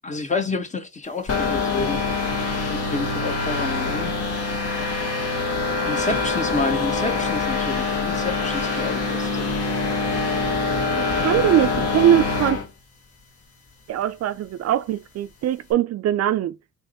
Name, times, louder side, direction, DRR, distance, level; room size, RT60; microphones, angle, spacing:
voice 1, 0.0-2.0 2.7-4.2 5.9-9.5, left 3 dB, 25° left, 1.1 m, -29 dB
sound 1, 1.3-12.7, left 3 dB, 50° left, 1.6 m, -24 dB
voice 2, 11.0-12.6 13.9-16.6, right 11 dB, 55° right, 0.4 m, -21 dB
3.5 x 3.1 x 3.9 m
cardioid pair, 90°, 30 cm